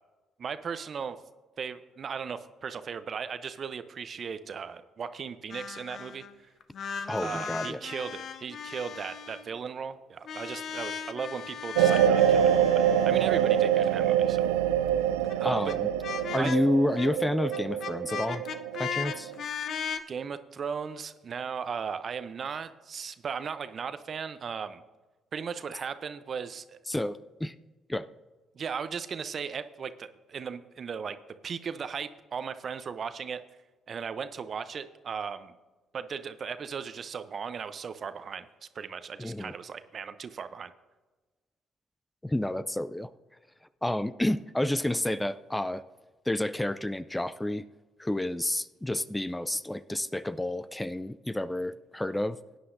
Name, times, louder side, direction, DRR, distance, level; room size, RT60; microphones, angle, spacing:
voice 1, 0.4-1.2 1.6-6.5 7.2-14.5 15.4-15.7 16.4-16.5 20.1-24.8 25.3-26.8 28.5-31.2 31.4-33.4 33.9-35.5 35.9-38.5 38.7-40.7, right 6 dB, 50° right, 12 dB, 0.7 m, -37 dB
sound 1, 5.5-6.3 6.6-9.5 10.2-14.5 15.2-15.3 15.6-15.7 16.0-16.6 16.9-17.1 17.5-20.0, left 7 dB, 60° left, 0.6 m, -38 dB
voice 2, 7.1-7.8 15.4-15.9 16.3-18.4 18.8-19.3 26.9-27.5 27.9-28.1 39.2-39.5 42.2-43.1 43.8-45.8 46.3-47.6 48.0-52.4, left 1 dB, 10° left, 14 dB, 0.4 m, -30 dB
sound 2, 11.8-19.4, right 10 dB, 85° right, 0.4 m, -25 dB
16.5 x 9.6 x 2.6 m, 1.2 s
hypercardioid pair, 50°, 0 cm